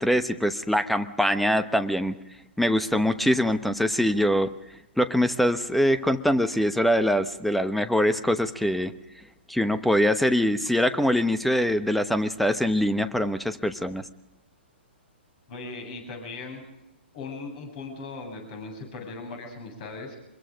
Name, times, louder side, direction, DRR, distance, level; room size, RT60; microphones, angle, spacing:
voice 1, 0.0-2.2 2.6-4.5 5.0-8.9 9.5-14.0, equal, ahead, 12 dB, 1.0 m, -23 dB
voice 2, 15.5-16.6 17.1-20.2, left 3 dB, 45° left, 4 dB, 7.8 m, -38 dB
25.0 x 22.0 x 5.2 m, 0.87 s
hypercardioid pair, 125°, 6 cm